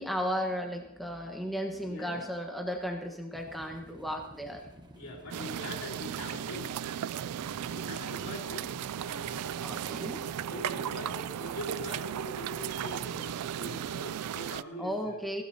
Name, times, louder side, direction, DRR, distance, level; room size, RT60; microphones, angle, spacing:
voice 1, 0.0-4.6 9.6-10.2 14.8-15.4, equal, ahead, 1 dB, 1.3 m, -35 dB
voice 2, 1.9-2.2 4.9-6.7 7.7-9.5 10.4-15.3, left 1 dB, 65° left, 0 dB, 4.3 m, -43 dB
sound 1, 3.3-13.9, equal, 20° right, 1.1 m, -52 dB
sound 2, 5.3-14.6, right 9 dB, 85° right, 0.4 m, -36 dB
19.5 x 17.0 x 2.9 m, 0.91 s
head